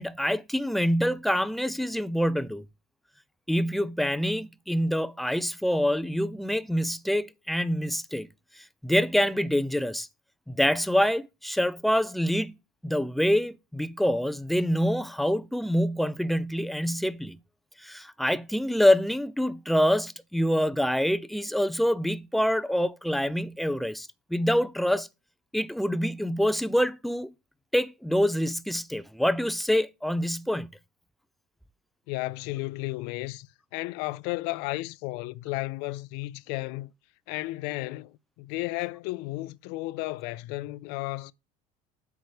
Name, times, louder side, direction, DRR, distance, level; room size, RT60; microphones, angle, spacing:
voice 1, 0.0-2.6 3.5-8.3 8.6-10.1 10.5-12.5 12.8-17.4 17.8-25.1 25.5-27.3 27.7-30.7, equal, ahead, 0.4 m, -26 dB
voice 2, 32.1-33.5 33.7-36.9 37.3-41.3, left 20 dB, 70° left, 0.5 m, -33 dB
8.1 x 4.7 x 4.8 m
cardioid pair, 130°, 18 cm